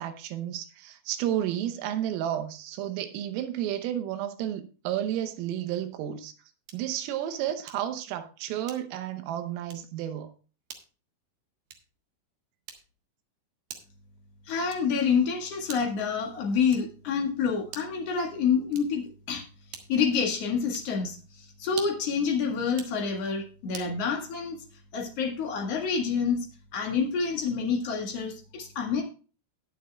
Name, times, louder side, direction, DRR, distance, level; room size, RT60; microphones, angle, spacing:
voice 1, 0.0-6.3 6.7-10.3, right 11 dB, 80° right, 3.5 m, -32 dB
sound 1, 6.6-7.0 7.7-8.0 8.6-9.1 9.6-9.9 10.7-11.0 11.7-12.0 12.7-13.1 13.7-14.1 14.7-15.0 15.7-16.1 16.7-17.1 17.7-18.0 18.7-19.1 19.7-20.1 20.7-21.0 21.7-22.1 22.7-23.0 23.7-24.0, right 7 dB, 65° right, 2.1 m, -45 dB
voice 2, 14.5-19.0 19.3-19.4 19.9-24.6 24.9-26.5 26.7-29.0, left 6 dB, 65° left, 1.5 m, -28 dB
20.5 x 7.4 x 2.3 m
omnidirectional pair, 6.0 m